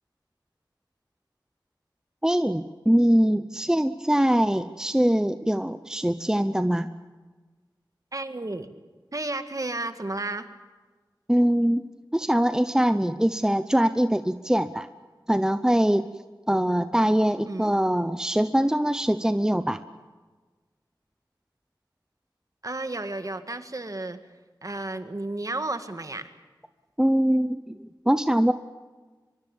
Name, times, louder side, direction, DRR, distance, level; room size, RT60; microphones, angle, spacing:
voice 1, 2.2-6.9 11.3-11.8 12.1-14.9 15.3-16.1 16.5-19.8 27.0-27.8 28.1-28.5, equal, 10° right, 11 dB, 0.8 m, -22 dB
voice 2, 8.1-8.7 9.1-10.5 17.5-17.7 22.6-24.2 24.6-26.3, right 2 dB, 45° right, 8 dB, 2.0 m, -32 dB
24.0 x 24.0 x 7.3 m, 1.3 s
wide cardioid pair, 55°, 8 cm